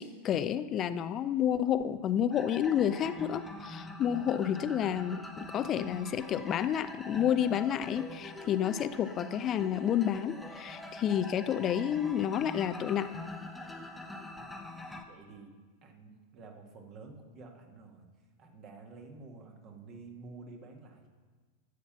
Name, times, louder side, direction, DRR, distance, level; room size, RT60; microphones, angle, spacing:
voice 1, 0.0-13.2, left 9 dB, 30° left, 14 dB, 0.4 m, -30 dB
sound 1, 2.3-15.0, left 2 dB, 5° left, 0.9 m, -44 dB
voice 2, 15.1-18.1 18.4-21.1, right 3 dB, 35° right, 3 dB, 1.8 m, -50 dB
12.0 x 7.3 x 5.7 m, 1.4 s
figure-of-eight pair, 90°, 0 cm